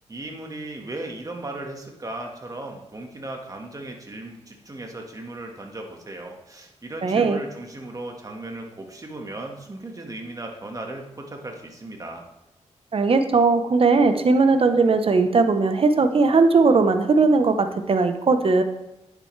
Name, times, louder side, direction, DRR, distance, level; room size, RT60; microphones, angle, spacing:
voice 1, 0.1-12.3, right 2 dB, 30° right, 2 dB, 1.7 m, -36 dB
voice 2, 7.0-7.4 12.9-18.6, right 4 dB, 50° right, 8 dB, 0.9 m, -18 dB
10.0 x 7.6 x 3.3 m, 0.88 s
cardioid pair, 80°, 12 cm